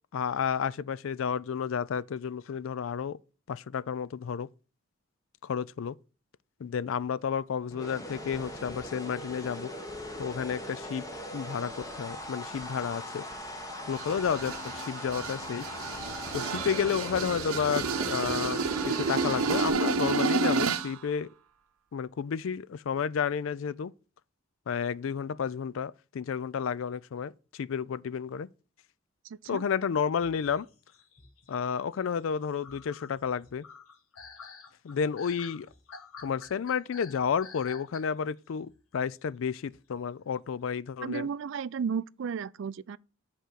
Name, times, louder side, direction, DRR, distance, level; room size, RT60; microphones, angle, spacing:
voice 1, 0.1-3.2 3.5-4.5 5.4-6.0 6.6-9.7 10.2-11.0 11.3-13.2 13.9-15.7 16.3-21.3 21.9-23.9 24.7-28.5 29.5-30.7 31.5-33.7 34.8-35.7 36.2-41.3, left 7 dB, 65° left, 0.4 m, -31 dB
sound 1, 7.7-19.7, left 1 dB, 15° left, 1.1 m, -40 dB
sound 2, 14.0-21.0, right 4 dB, 85° right, 0.8 m, -30 dB
voice 2, 29.2-29.7 41.0-43.0, right 6 dB, 60° right, 0.3 m, -34 dB
sound 3, 30.2-38.4 38.7-39.0 39.7-39.8 40.2-40.5, left 5 dB, 85° left, 1.3 m, -50 dB
8.1 x 3.8 x 6.3 m
head